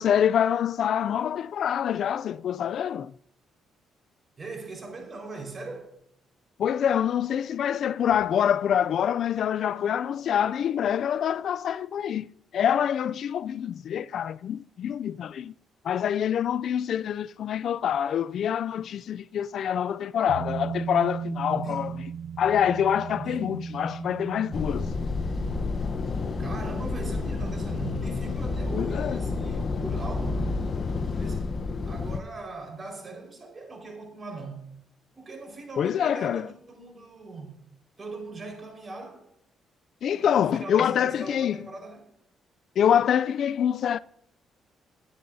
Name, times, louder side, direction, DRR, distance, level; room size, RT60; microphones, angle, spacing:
voice 1, 0.0-3.1 6.6-12.3 12.5-15.5 15.8-21.9 22.4-24.9 28.7-29.2 35.8-36.5 40.0-41.6 42.8-44.0, left 9 dB, 65° left, 0.3 m, -26 dB
voice 2, 4.4-5.9 21.5-21.9 23.2-23.6 26.4-30.5 31.1-31.5 31.8-34.6 35.1-37.6 38.0-39.3 40.1-42.1, right 3 dB, 35° right, 4.6 m, -40 dB
sound 1, 20.3-29.4 29.7-29.8, right 7 dB, 80° right, 0.4 m, -38 dB
sound 2, 24.5-32.2, left 3 dB, 45° left, 0.9 m, -30 dB
21.5 x 9.5 x 2.7 m
cardioid pair, 90°, 0 cm